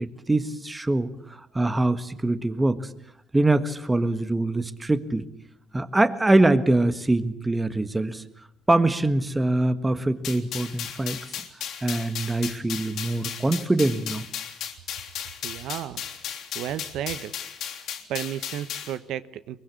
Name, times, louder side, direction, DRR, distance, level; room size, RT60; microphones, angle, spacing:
voice 1, 0.0-2.9 3.3-5.3 5.7-8.2 8.7-11.5 11.8-14.3, right 2 dB, 15° right, 11 dB, 1.6 m, -24 dB
sound 1, 10.2-19.0, left 9 dB, 70° left, 3.4 m, -35 dB
voice 2, 15.4-16.0 16.5-17.3 18.1-19.6, right 11 dB, 80° right, 13 dB, 1.1 m, -33 dB
23.5 x 23.0 x 8.4 m, 0.73 s
cardioid pair, 125°, 0 cm